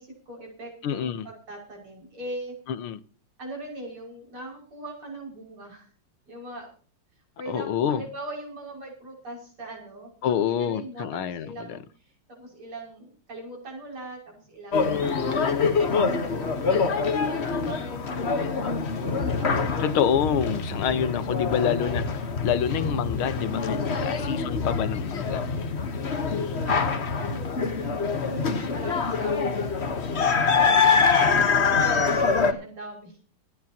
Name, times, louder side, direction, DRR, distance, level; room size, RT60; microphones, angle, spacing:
voice 1, 0.0-2.6 3.4-5.9 6.3-6.7 7.4-16.7 17.1-18.8 19.2-20.0 20.9-21.0 24.0-24.2 26.6-33.2, right 1 dB, 85° right, 6.9 m, -41 dB
voice 2, 0.8-1.3 2.7-3.0 7.5-8.0 10.2-11.8 17.5-17.6 19.8-25.5 31.4-31.7 32.0-32.1, left 8 dB, 80° left, 1.9 m, -27 dB
sound 1, 14.7-32.5, left 5 dB, 40° left, 1.2 m, -25 dB
27.0 x 9.8 x 2.9 m
omnidirectional pair, 2.3 m